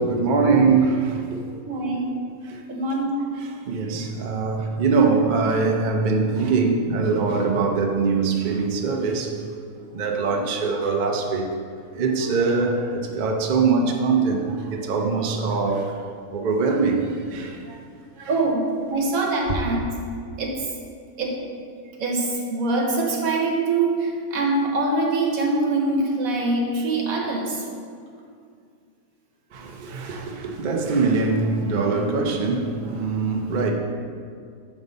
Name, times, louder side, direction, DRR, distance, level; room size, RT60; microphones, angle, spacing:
voice 1, 0.0-1.6 2.5-2.6 3.2-9.3 9.8-11.5 11.9-15.9 16.3-17.8 18.2-18.3 19.5-19.6 29.5-33.7, right 4 dB, 50° right, 0.5 m, -23 dB
voice 2, 1.7-2.1 2.7-3.2 18.3-18.6 18.9-19.8 20.4-20.6 21.2-21.3 22.0-27.6, right 2 dB, 70° right, 1.5 m, -23 dB
7.1 x 5.4 x 4.0 m
omnidirectional pair, 1.6 m